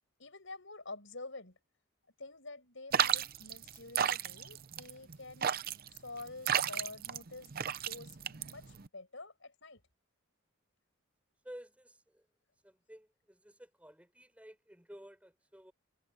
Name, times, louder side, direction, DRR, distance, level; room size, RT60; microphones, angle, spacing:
voice 1, 0.2-1.6 2.2-5.5 5.9-7.5 7.9-9.8, left 3 dB, 65° left, 7.5 m, -48 dB
sound 1, 2.9-8.9, right 9 dB, 45° right, 0.6 m, -33 dB
voice 2, 11.4-12.3 12.6-15.7, equal, 5° right, 5.5 m, -53 dB
head